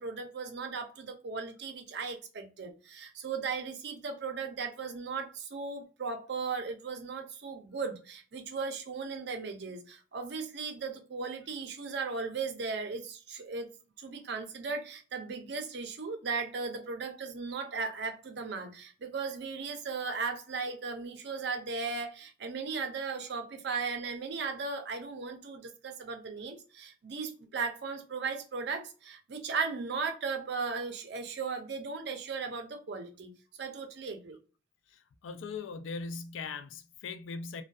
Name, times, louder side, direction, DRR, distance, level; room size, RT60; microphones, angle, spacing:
voice 1, 0.0-13.7 14.0-33.3 33.6-34.4, right 4 dB, 60° right, 0.5 m, -37 dB
voice 2, 34.9-37.6, left 4 dB, 85° left, 0.3 m, -40 dB
2.6 x 2.2 x 2.3 m
head